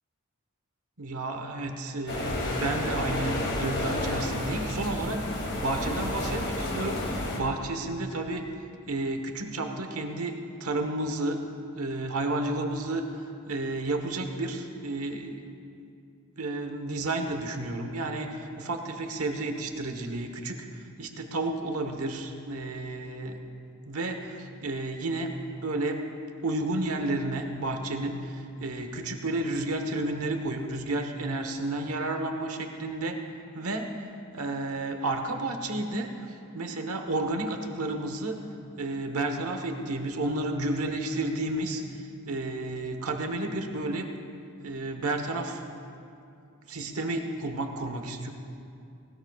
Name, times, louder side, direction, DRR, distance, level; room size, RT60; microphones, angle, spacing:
voice 1, 1.0-8.5 8.8-11.4 11.7-13.0 13.5-15.5 16.4-20.7 21.0-23.4 23.9-25.3 25.6-26.0 26.4-33.2 33.5-33.9 34.3-36.3 36.5-38.4 38.8-41.8 42.3-44.1 44.6-45.6 46.7-48.3, right 2 dB, 90° right, 5 dB, 1.2 m, -31 dB
sound 1, 2.1-7.4, left 1 dB, 50° left, 2.3 m, -31 dB
19.5 x 19.0 x 2.4 m, 2.5 s
head